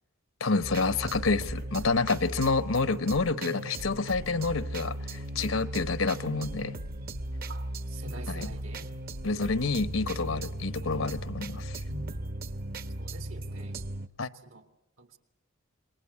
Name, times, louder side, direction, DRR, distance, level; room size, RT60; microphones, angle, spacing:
voice 1, 0.4-6.8 8.3-8.5 9.2-11.8 14.2-14.3, left 3 dB, 80° left, 1.1 m, -28 dB
sound 1, 0.6-14.1, right 1 dB, 45° right, 0.9 m, -37 dB
voice 2, 7.5-8.9 11.9-12.0 13.0-13.8 14.4-14.7 15.0-15.2, right 1 dB, 80° right, 2.3 m, -45 dB
27.5 x 23.0 x 8.4 m
head